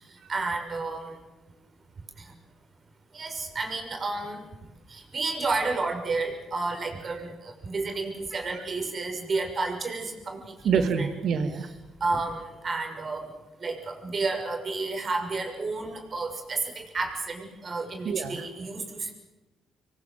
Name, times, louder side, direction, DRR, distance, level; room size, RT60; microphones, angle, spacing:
voice 1, 0.3-1.1 3.1-4.4 4.9-10.4 11.0-11.1 11.5-11.7 12.0-13.2 13.6-19.1, right 3 dB, 40° right, 3 dB, 6.6 m, -31 dB
voice 2, 10.6-11.7 18.0-18.4, right 6 dB, 70° right, 9 dB, 2.6 m, -26 dB
27.5 x 23.0 x 7.9 m, 1.1 s
cardioid pair, 90°, 0 cm